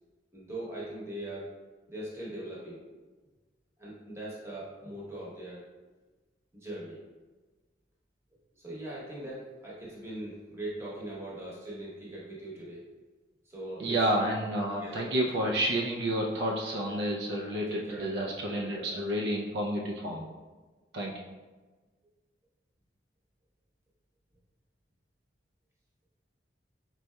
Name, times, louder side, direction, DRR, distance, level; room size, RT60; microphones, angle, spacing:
voice 1, 0.3-1.5 1.9-2.8 3.8-5.6 6.5-7.0 8.6-12.8 13.4-14.1 14.8-15.5 16.8-16.9 17.7-19.0, right 1 dB, 15° right, -6 dB, 1.0 m, -41 dB
voice 2, 13.8-20.3 20.9-21.2, right 1 dB, 60° right, -1 dB, 0.4 m, -30 dB
4.6 x 4.0 x 2.2 m, 1.3 s
head